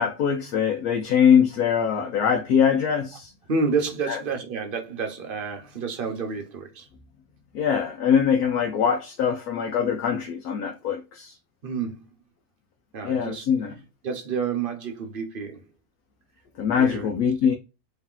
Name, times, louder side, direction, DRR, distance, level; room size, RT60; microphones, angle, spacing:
voice 1, 0.0-3.3 4.1-4.2 7.5-11.3 13.0-13.7 16.6-17.5, left 7 dB, 85° left, 1.2 m, -22 dB
voice 2, 3.5-6.9 11.6-12.1 12.9-13.5 14.0-15.6 16.7-17.1, right 5 dB, 45° right, 0.9 m, -29 dB
3.2 x 2.8 x 3.7 m
omnidirectional pair, 1.5 m